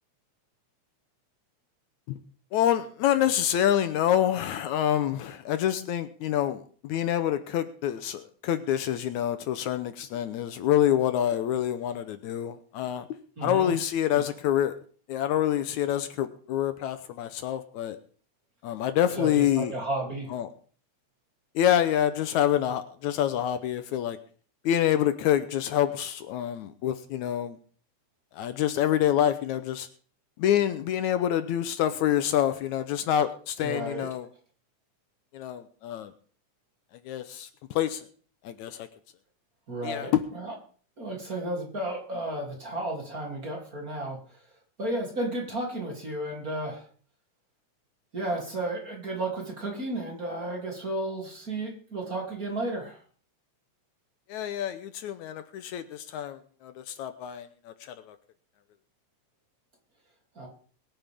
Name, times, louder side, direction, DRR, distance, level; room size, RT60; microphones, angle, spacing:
voice 1, 2.5-13.1 13.4-14.7 15.1-18.0 18.6-19.8 20.3-20.5 21.6-24.2 24.6-27.6 28.3-29.9 30.4-34.3 35.3-36.1 37.1-38.1 38.4-38.9 39.8-40.2 54.3-58.2, left 11 dB, 75° left, 11 dB, 2.1 m, -27 dB
voice 2, 13.4-13.8 14.1-14.2 19.1-20.3 33.6-34.1 39.7-40.6 41.0-44.4 44.8-46.9 48.1-53.0 60.3-60.5, right 1 dB, 30° right, 0 dB, 3.3 m, -33 dB
22.5 x 9.4 x 3.6 m, 0.44 s
omnidirectional pair, 3.5 m